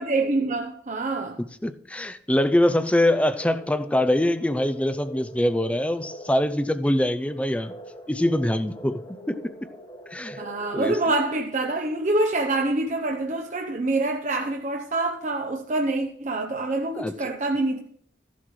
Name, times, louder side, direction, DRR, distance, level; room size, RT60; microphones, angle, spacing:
voice 1, 0.0-1.4 10.4-17.8, right 2 dB, 40° right, 0.7 m, -26 dB
voice 2, 1.6-7.7 8.1-9.0 9.3-9.4 10.1-10.4 10.7-11.0 17.0-17.1, left 1 dB, 5° left, 0.4 m, -23 dB
sound 1, 3.0-11.4, right 1 dB, 25° left, 1.2 m, -44 dB
14.0 x 11.0 x 3.1 m
head